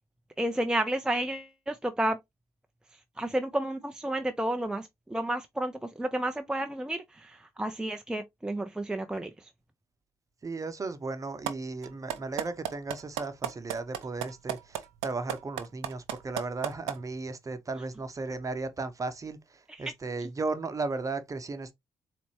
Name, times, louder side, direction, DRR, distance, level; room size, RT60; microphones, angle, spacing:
voice 1, 0.4-2.2 3.2-9.5 19.7-19.9, right 1 dB, 5° right, 0.5 m, -31 dB
voice 2, 10.4-19.4 19.8-21.7, right 3 dB, 30° right, 0.9 m, -35 dB
sound 1, 11.5-11.6 11.8-17.0, right 11 dB, 75° right, 0.5 m, -32 dB
4.1 x 3.3 x 3.0 m
hypercardioid pair, 45°, 11 cm